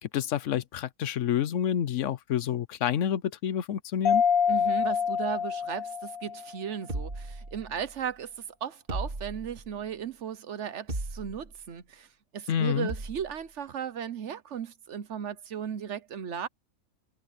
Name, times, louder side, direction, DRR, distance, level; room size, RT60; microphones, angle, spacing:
voice 1, 0.0-4.2 12.5-12.9, left 9 dB, 65° left, 1.1 m, -28 dB
Mallet percussion, 4.0-6.6, left 7 dB, 85° left, 1.5 m, -26 dB
voice 2, 4.5-16.5, right 8 dB, 60° right, 1.1 m, -36 dB
sound 1, 6.9-8.0 8.9-9.8 10.9-11.6 12.9-13.4, right 2 dB, 40° right, 2.2 m, -37 dB
omnidirectional pair, 1.4 m